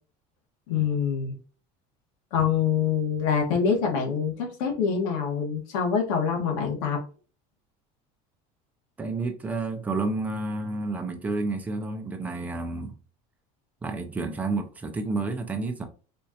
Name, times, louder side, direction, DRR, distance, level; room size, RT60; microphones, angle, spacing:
voice 1, 0.7-1.3 2.3-7.0, left 6 dB, 85° left, 1.3 m, -25 dB
voice 2, 9.0-12.9 13.8-15.8, right 3 dB, 10° right, 0.4 m, -30 dB
4.3 x 2.4 x 2.7 m
cardioid pair, 170°, 17 cm